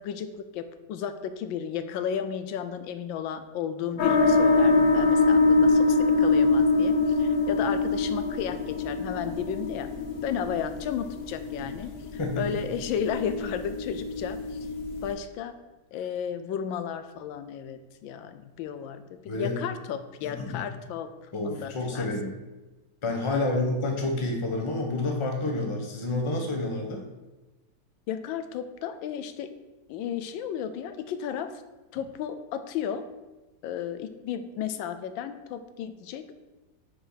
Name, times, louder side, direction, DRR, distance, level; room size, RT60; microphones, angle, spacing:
voice 1, 0.0-9.9 10.2-11.9 12.4-14.6 15.0-15.5 15.9-19.0 19.4-22.1 23.3-23.8 28.1-29.5 29.9-31.6 31.9-33.1 33.6-36.3, left 8 dB, 90° left, 10 dB, 1.4 m, -33 dB
sound 1, 4.0-15.1, left 3 dB, 60° left, 1.1 m, -24 dB
voice 2, 12.2-12.6 19.3-19.6 20.2-20.6 21.3-22.3 23.0-27.0, left 2 dB, 25° left, 2 dB, 0.7 m, -29 dB
6.5 x 4.0 x 6.3 m, 1.1 s
omnidirectional pair, 2.0 m